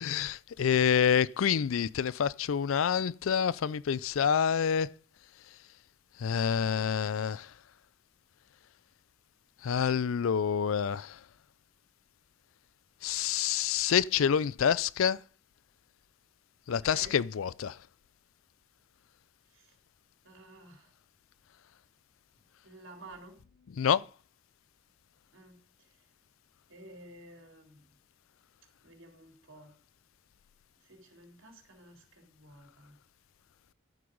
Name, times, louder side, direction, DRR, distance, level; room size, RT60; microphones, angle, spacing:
voice 1, 0.0-4.9 6.2-7.5 9.6-11.1 13.0-15.2 16.7-17.8 23.8-24.0, left 7 dB, 80° left, 0.4 m, -27 dB
voice 2, 16.7-17.2 19.5-19.8 20.2-20.9 22.6-23.4 25.3-25.6 26.7-27.8 28.8-29.8 30.8-32.9, right 1 dB, 70° right, 3.6 m, -52 dB
12.5 x 7.8 x 5.3 m
head